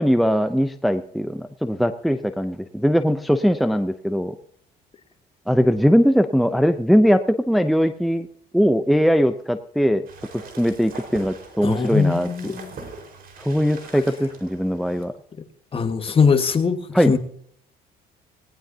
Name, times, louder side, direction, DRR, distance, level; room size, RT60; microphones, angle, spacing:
voice 1, 0.0-4.4 5.5-8.3 8.5-10.0 10.3-12.5 13.4-15.1 16.9-17.1, equal, ahead, 7 dB, 0.7 m, -20 dB
sound 1, 10.1-15.1, right 4 dB, 60° right, 4.8 m, -42 dB
voice 2, 11.6-12.7 15.7-16.8 17.1-17.2, left 5 dB, 35° left, 7 dB, 1.7 m, -20 dB
19.0 x 18.5 x 2.9 m, 0.64 s
cardioid pair, 110°, 17 cm